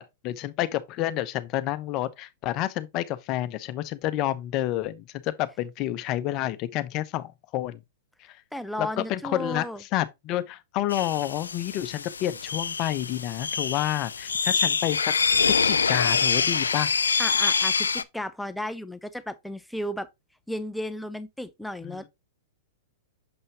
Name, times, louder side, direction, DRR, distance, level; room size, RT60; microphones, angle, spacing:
voice 1, 0.0-7.8 8.2-8.4 8.8-15.1 15.4-16.9 21.8-22.1, left 14 dB, 40° left, 0.8 m, -29 dB
voice 2, 8.5-9.8 17.2-20.1 20.5-22.1, left 1 dB, 5° left, 0.7 m, -34 dB
sound 1, 10.9-18.0, left 5 dB, 80° left, 0.4 m, -25 dB
7.0 x 5.5 x 2.9 m
hypercardioid pair, 105°, 0 cm